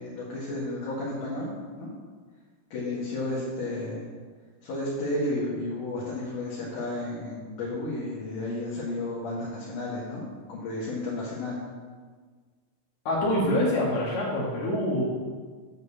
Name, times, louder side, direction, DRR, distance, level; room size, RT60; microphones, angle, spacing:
voice 1, 0.0-1.5 1.8-1.9 2.7-4.0 4.6-10.2 10.5-11.6, left 2 dB, 80° left, -8 dB, 3.4 m, -32 dB
voice 2, 13.0-15.0, left 1 dB, 65° left, -6 dB, 3.0 m, -25 dB
9.0 x 5.3 x 7.1 m, 1.5 s
omnidirectional pair, 3.5 m